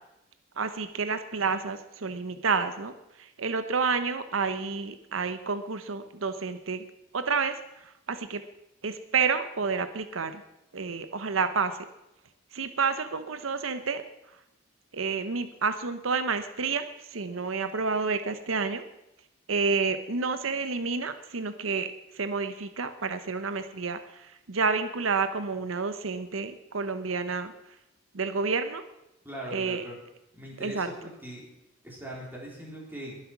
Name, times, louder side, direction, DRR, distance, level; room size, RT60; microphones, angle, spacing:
voice 1, 0.6-6.9 7.1-8.4 8.8-10.4 10.7-11.8 12.5-14.0 14.9-18.8 19.5-27.5 28.1-28.8 29.5-29.8 30.6-30.9, right 5 dB, 80° right, 10 dB, 0.9 m, -29 dB
voice 2, 29.2-30.0 30.3-31.5 31.8-33.2, equal, 10° right, -3 dB, 3.8 m, -40 dB
21.5 x 7.8 x 6.0 m, 0.87 s
head